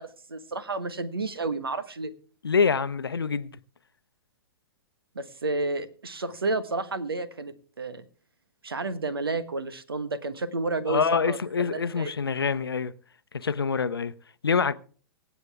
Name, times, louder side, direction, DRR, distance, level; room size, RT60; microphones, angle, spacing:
voice 1, 0.0-2.1 5.1-8.0 8.6-12.1, right 3 dB, 80° right, 1.4 m, -31 dB
voice 2, 2.4-3.5 10.9-12.9 13.3-14.1 14.4-14.7, left 5 dB, 80° left, 0.7 m, -25 dB
24.5 x 8.2 x 3.5 m
figure-of-eight pair, 110°, 12 cm